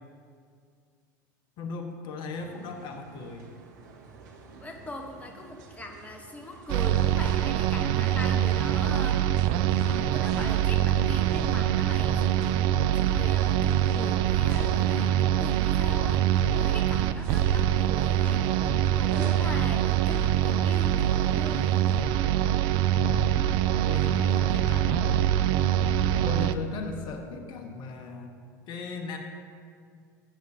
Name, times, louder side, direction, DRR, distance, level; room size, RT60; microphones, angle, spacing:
voice 1, 1.6-3.5 22.9-23.5 23.8-25.3 25.6-25.8 26.2-28.3 28.7-29.2, left 3 dB, 50° left, 4 dB, 1.3 m, -37 dB
sound 1, 2.3-22.0, right 4 dB, 70° right, 1.2 m, -47 dB
voice 2, 4.6-12.6 12.9-21.9, left 1 dB, 15° left, 3 dB, 1.0 m, -41 dB
sound 2, 6.7-26.5, right 11 dB, 50° right, 0.4 m, -24 dB
16.0 x 8.2 x 2.8 m, 2.2 s
figure-of-eight pair, 75°, 10 cm